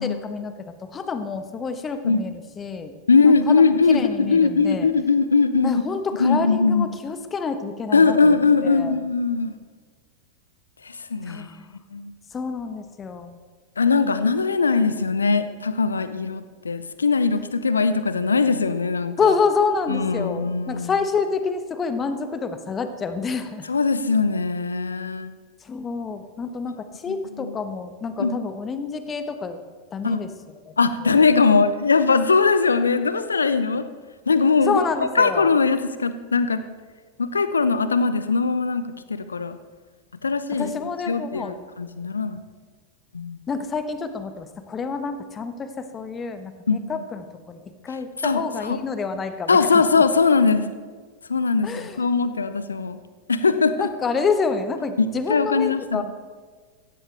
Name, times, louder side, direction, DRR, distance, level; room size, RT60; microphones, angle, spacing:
voice 1, 0.0-2.9 3.2-3.6 3.9-4.9 5.6-9.0 11.2-11.7 12.3-13.4 14.0-14.1 19.2-23.7 25.6-29.6 29.9-30.3 30.7-30.8 31.0-31.2 34.6-35.5 40.5-41.6 43.5-49.8 51.6-52.1 53.8-56.0, left 5 dB, 20° left, 9 dB, 1.2 m, -28 dB
voice 2, 3.1-5.8 6.2-6.9 7.9-9.5 10.9-11.5 11.9-12.1 13.8-19.3 19.9-20.9 23.7-25.3 27.4-27.5 28.2-28.4 30.0-30.2 30.8-33.8 34.3-34.8 35.2-36.6 37.2-38.8 39.1-39.6 40.2-40.7 41.1-42.4 43.1-43.4 46.7-46.8 48.2-48.8 49.5-50.7 51.3-53.0 53.3-53.9 55.0-56.0, left 4 dB, 75° left, 12 dB, 0.8 m, -20 dB
16.0 x 15.5 x 3.4 m, 1.5 s
figure-of-eight pair, 90°, 0 cm